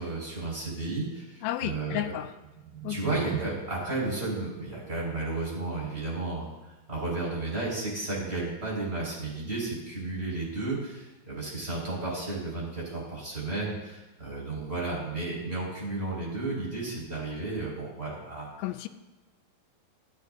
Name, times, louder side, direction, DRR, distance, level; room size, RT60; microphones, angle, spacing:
voice 1, 0.0-2.1 2.9-18.5, right 3 dB, 15° right, -4 dB, 5.7 m, -33 dB
voice 2, 1.4-2.3 2.8-3.0 18.6-18.9, left 13 dB, 90° left, 10 dB, 2.5 m, -32 dB
sound 1, 2.2-8.3, right 8 dB, 65° right, 2.8 m, -43 dB
27.5 x 9.5 x 2.7 m, 1.1 s
omnidirectional pair, 4.2 m